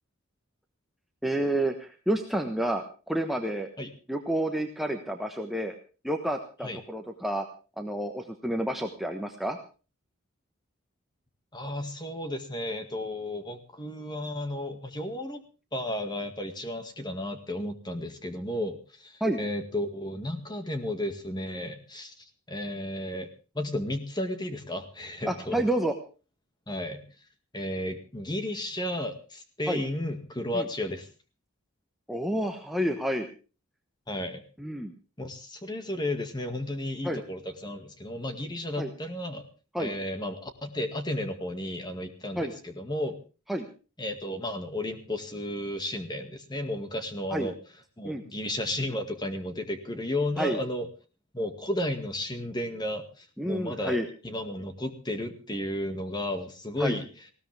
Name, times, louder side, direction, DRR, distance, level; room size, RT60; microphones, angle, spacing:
voice 1, 1.2-3.7 4.1-5.7 6.0-7.4 7.8-9.6 19.2-19.4 25.2-25.9 29.7-29.8 30.5-30.7 32.1-33.3 34.6-34.9 37.0-37.2 38.8-38.9 39.7-39.9 42.4-42.5 43.5-43.7 47.3-47.5 48.0-48.2 50.4-50.6 53.4-54.1 56.8-57.0, right 1 dB, ahead, 3 dB, 1.2 m, -29 dB
voice 2, 11.5-15.4 15.7-23.3 23.5-25.6 26.7-27.0 27.5-31.1 34.1-34.4 35.2-39.5 39.8-43.2 44.0-47.5 48.0-50.9 51.3-54.0 54.2-57.1, left 1 dB, 20° left, 7 dB, 1.9 m, -33 dB
19.5 x 17.0 x 3.4 m, 0.35 s
head